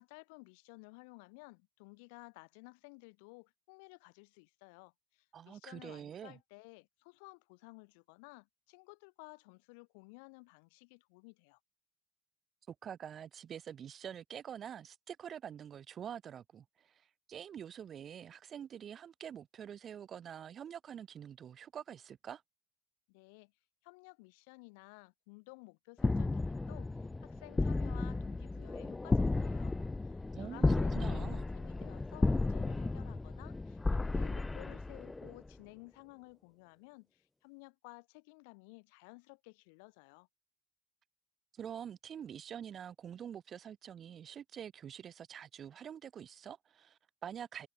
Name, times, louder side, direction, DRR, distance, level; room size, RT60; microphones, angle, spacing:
voice 1, 0.0-11.6 23.1-23.5 23.8-29.8 30.0-40.3, left 32 dB, 90° left, 4.4 m, -55 dB
voice 2, 5.3-6.4 12.7-16.9 17.3-22.4 30.3-31.4 41.5-47.7, right 9 dB, 40° right, 2.4 m, -46 dB
sound 1, 26.0-35.5, left 3 dB, 15° left, 0.4 m, -33 dB
supercardioid pair, 110°, 0 cm